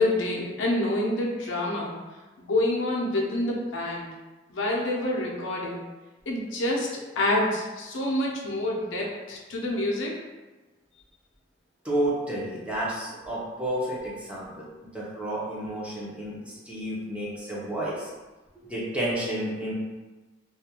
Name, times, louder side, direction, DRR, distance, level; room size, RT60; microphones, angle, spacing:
voice 1, 0.0-1.9 2.4-4.1 4.5-5.8 6.3-6.9 7.2-10.1, left 1 dB, 80° left, -2 dB, 0.5 m, -27 dB
voice 2, 11.8-14.7 14.9-18.1 18.7-19.7, right 1 dB, 5° right, -6 dB, 0.6 m, -31 dB
2.4 x 2.2 x 2.8 m, 1.2 s
head